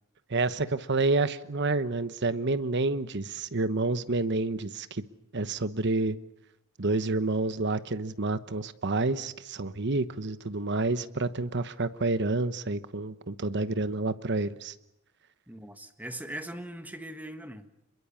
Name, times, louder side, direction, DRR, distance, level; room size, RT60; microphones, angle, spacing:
voice 1, 0.3-5.0 5.3-6.2 6.8-14.7, right 3 dB, 55° right, 1.1 m, -29 dB
voice 2, 15.5-17.7, right 1 dB, 10° right, 1.5 m, -40 dB
26.0 x 22.5 x 7.2 m
head